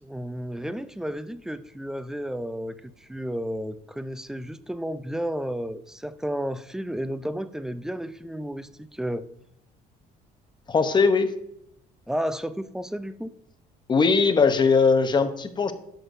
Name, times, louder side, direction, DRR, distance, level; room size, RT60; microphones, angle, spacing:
voice 1, 0.0-9.3 12.1-13.3, equal, 5° right, 13 dB, 0.4 m, -32 dB
voice 2, 10.7-11.3 13.9-15.7, left 4 dB, 25° left, 9 dB, 0.8 m, -20 dB
11.0 x 6.3 x 2.6 m, 0.76 s
cardioid pair, 110°, 17 cm